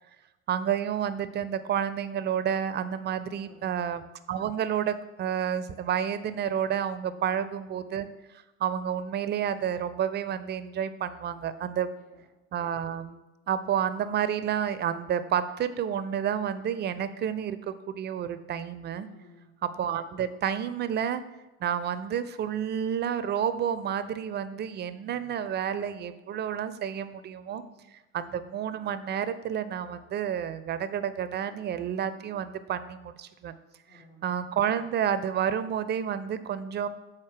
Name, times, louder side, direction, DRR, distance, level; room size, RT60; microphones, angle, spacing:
voice 1, 0.5-8.1 8.6-11.9 12.5-19.1 19.6-21.2 21.6-27.6 28.1-33.5 34.2-36.9, right 9 dB, 25° right, 13 dB, 0.4 m, -30 dB
voice 2, 3.2-3.7 7.0-7.4 11.9-12.2 19.0-19.5 27.4-27.8 33.9-34.3, left 2 dB, 75° left, -10 dB, 2.5 m, -56 dB
7.2 x 4.2 x 4.9 m, 1.0 s
figure-of-eight pair, 60°, 43 cm